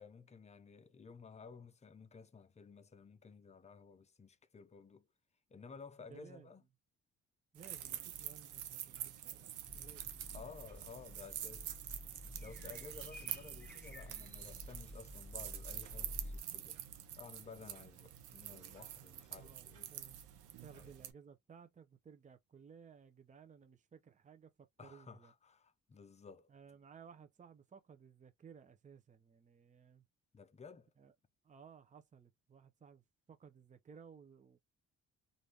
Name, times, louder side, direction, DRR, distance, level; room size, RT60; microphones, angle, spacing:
voice 1, 0.0-5.1 5.5-6.6 10.3-11.8 12.4-16.8 17.2-19.9 20.7-20.9 24.8-26.5 30.3-30.9, left 5 dB, 20° left, 0.6 m, -54 dB
voice 2, 6.0-6.5 7.5-10.3 19.4-20.2 20.6-25.3 26.5-30.0 31.0-31.1 31.4-34.6, right 6 dB, 25° right, 0.6 m, -59 dB
sound 1, 7.5-21.1, right 11 dB, 80° right, 0.7 m, -47 dB
sound 2, 9.7-16.4, left 1 dB, 5° left, 1.1 m, -51 dB
3.3 x 2.6 x 2.8 m
cardioid pair, 90°, 30 cm